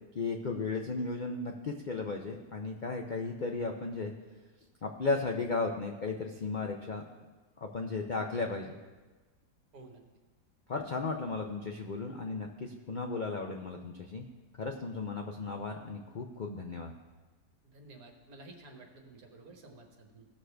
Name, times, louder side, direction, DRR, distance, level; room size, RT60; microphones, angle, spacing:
voice 1, 0.1-4.1 4.8-7.0 7.6-8.8 10.7-14.3 14.6-16.9, left 3 dB, 85° left, 2 dB, 0.4 m, -35 dB
voice 2, 17.6-20.3, right 2 dB, 60° right, 2 dB, 1.6 m, -52 dB
17.0 x 6.4 x 3.4 m, 1.3 s
omnidirectional pair, 1.8 m